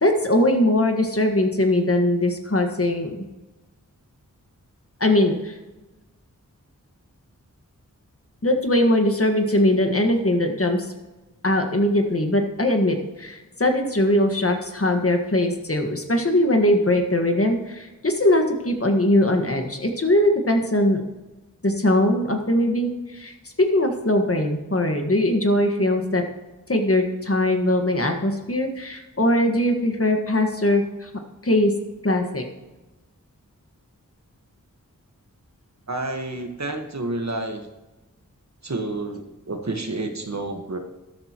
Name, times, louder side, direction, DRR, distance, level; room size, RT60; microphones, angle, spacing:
voice 1, 0.0-3.2 5.0-5.5 8.4-10.9 11.4-21.0 21.6-26.2 26.7-31.1 31.4-31.7 32.0-32.4, left 1 dB, 45° left, 4 dB, 1.6 m, -21 dB
voice 2, 35.9-37.7 38.6-40.8, right 2 dB, 55° right, 5 dB, 1.5 m, -29 dB
13.0 x 11.5 x 3.0 m, 1.1 s
wide cardioid pair, 50°, 33 cm